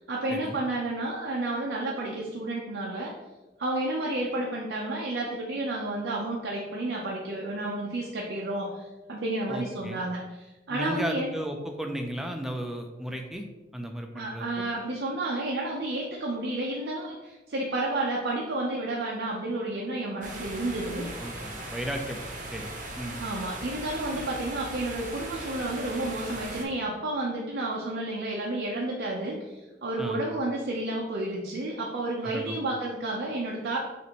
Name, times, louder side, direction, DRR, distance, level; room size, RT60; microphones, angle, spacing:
voice 1, 0.1-3.2 3.6-11.3 14.1-21.1 23.2-33.8, right 2 dB, 85° right, -3 dB, 0.6 m, -31 dB
voice 2, 9.5-10.0 10.7-13.5 13.7-14.7 21.2-22.2 22.5-22.7 23.0-23.2 30.0-30.2 32.2-32.6, equal, ahead, 3 dB, 0.4 m, -34 dB
sound 1, 20.2-26.6, right 2 dB, 50° right, 0.7 m, -38 dB
5.9 x 2.6 x 2.9 m, 1.1 s
head